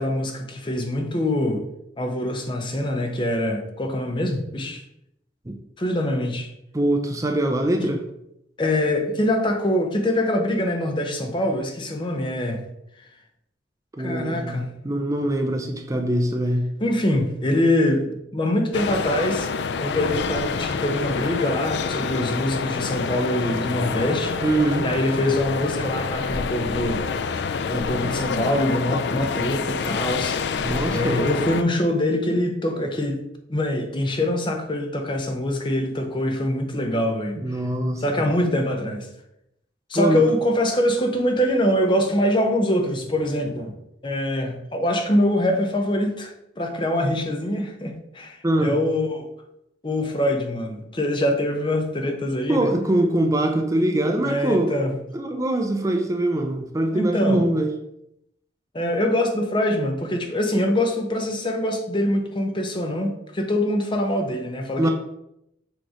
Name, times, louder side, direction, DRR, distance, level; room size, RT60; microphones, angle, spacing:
voice 1, 0.0-1.6 2.0-4.8 5.8-6.5 7.8-7.9 8.6-12.6 14.0-14.7 16.8-18.0 18.3-19.5 19.8-24.4 24.8-27.2 27.7-30.7 30.9-33.2 33.5-37.6 38.0-39.1 39.9-43.7 44.0-49.3 49.8-52.7 54.2-54.9 56.9-57.4 58.7-64.9, left 1 dB, 25° left, 5 dB, 0.7 m, -24 dB
voice 2, 6.7-8.0 14.0-16.7 24.4-24.9 30.6-31.2 37.4-38.3 39.9-40.3 48.4-48.8 52.5-54.8 55.1-57.7 64.8-64.9, right 1 dB, 20° right, 4 dB, 0.5 m, -23 dB
sound 1, 18.7-31.6, left 5 dB, 65° left, 0.4 m, -27 dB
6.3 x 3.2 x 4.8 m, 0.80 s
head